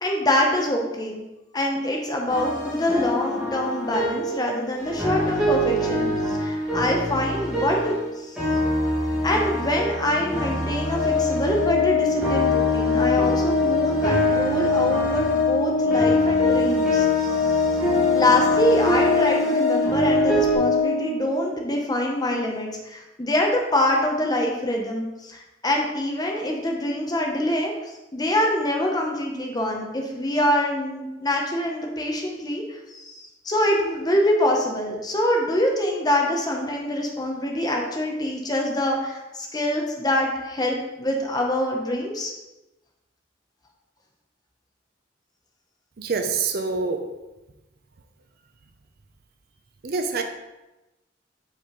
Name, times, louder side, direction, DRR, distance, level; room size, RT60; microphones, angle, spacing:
voice 1, 0.0-1.2 1.5-8.6 9.2-17.7 18.1-27.7 28.1-42.3, left 1 dB, 20° left, 0 dB, 0.8 m, -25 dB
sound 1, 2.3-8.1 8.4-20.5, equal, 5° right, 1.5 m, -26 dB
Organ, 10.8-21.5, left 4 dB, 50° left, 0.7 m, -23 dB
voice 2, 46.0-47.0 49.8-50.2, right 4 dB, 55° right, 5 dB, 0.5 m, -25 dB
5.4 x 5.0 x 3.7 m, 1.0 s
head